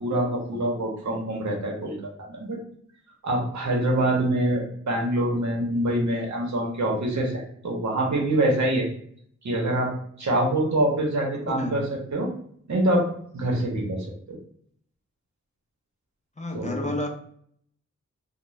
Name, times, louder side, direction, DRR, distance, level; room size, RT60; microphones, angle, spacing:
voice 1, 0.0-2.0 2.3-2.6 3.2-8.9 9.4-9.9 10.2-11.8 12.1-12.3 12.7-14.4 16.5-16.9, right 1 dB, 70° right, -1 dB, 0.8 m, -25 dB
voice 2, 11.4-11.8 16.4-17.1, left 2 dB, 25° left, 3 dB, 0.4 m, -30 dB
2.4 x 2.1 x 3.0 m, 0.63 s
wide cardioid pair, 80°, 29 cm